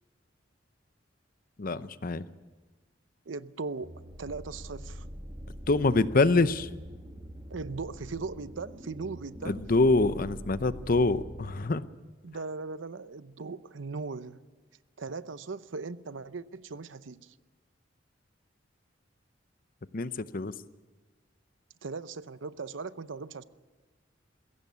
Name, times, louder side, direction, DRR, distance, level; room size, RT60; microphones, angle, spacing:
voice 1, 1.6-2.2 5.7-6.7 9.4-11.8 19.9-20.5, left 3 dB, 50° left, 0.7 m, -25 dB
voice 2, 3.3-3.9 4.2-5.1 7.5-9.6 12.2-14.4 15.0-17.3 21.8-23.4, right 4 dB, 90° right, 0.7 m, -38 dB
sound 1, 3.8-11.5, equal, 25° right, 1.3 m, -44 dB
21.5 x 16.5 x 8.4 m
head